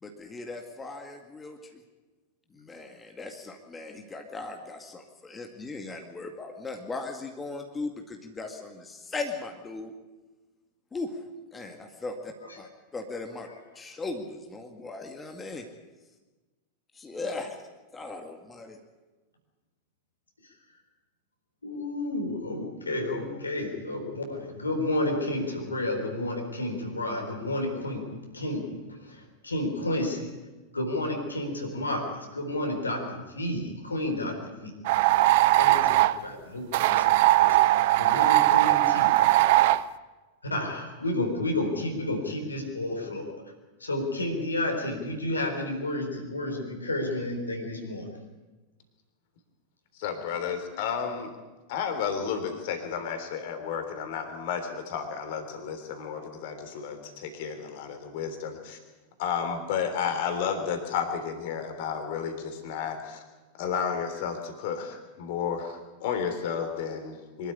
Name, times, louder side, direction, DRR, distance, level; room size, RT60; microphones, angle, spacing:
voice 1, 0.0-1.8 2.5-9.9 10.9-11.2 11.5-13.5 13.8-15.7 17.0-17.6 17.9-18.8, left 3 dB, 15° left, 4 dB, 2.0 m, -38 dB
voice 2, 21.6-28.1 28.3-28.7 29.0-30.3 30.7-34.7 35.6-37.6 38.0-39.1 40.5-43.3 43.8-48.1, left 1 dB, 80° left, 2 dB, 4.3 m, -31 dB
sound 1, 34.8-36.2 36.7-39.8, right 16 dB, 50° right, 0.6 m, -20 dB
voice 3, 49.9-51.3 51.7-58.8 59.2-63.2 63.5-67.5, left 7 dB, 50° left, 7 dB, 3.4 m, -32 dB
24.0 x 13.0 x 9.9 m, 1.2 s
figure-of-eight pair, 90°, 0 cm